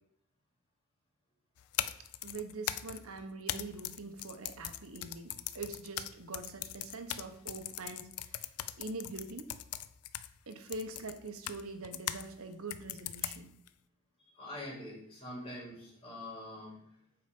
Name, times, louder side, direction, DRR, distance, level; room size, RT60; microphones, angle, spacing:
sound 1, 1.6-12.3 12.7-13.7, left 12 dB, 80° left, 0.4 m, -40 dB
voice 1, 2.2-8.5 8.8-9.5 10.5-13.5, right 3 dB, 70° right, 7 dB, 1.0 m, -44 dB
voice 2, 14.3-16.8, left 1 dB, 25° left, -5 dB, 2.9 m, -44 dB
7.9 x 4.4 x 5.2 m, 0.70 s
head